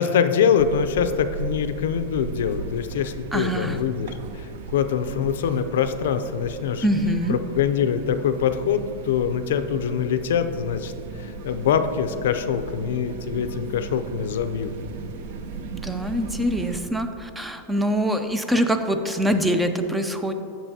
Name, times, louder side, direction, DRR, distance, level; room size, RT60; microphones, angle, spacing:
voice 1, 0.0-6.8 7.3-14.7, left 7 dB, 75° left, 10 dB, 0.4 m, -24 dB
sound 1, 0.6-16.8, right 4 dB, 60° right, 0.5 m, -37 dB
voice 2, 3.3-3.8 6.8-7.4 15.7-20.3, equal, 5° right, 7 dB, 0.3 m, -24 dB
9.0 x 6.8 x 2.7 m, 2.8 s
supercardioid pair, 155°, 0 cm